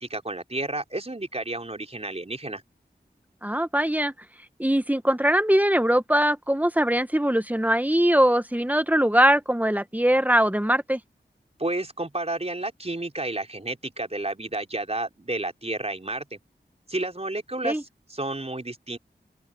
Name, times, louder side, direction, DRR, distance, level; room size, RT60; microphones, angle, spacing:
voice 1, 0.0-2.6 11.6-16.4 16.9-19.0, right 2 dB, 35° right, 4.4 m, -31 dB
voice 2, 3.4-4.1 4.6-11.0 17.6-17.8, equal, 10° right, 1.5 m, -21 dB
open air
wide cardioid pair, 45°, 18 cm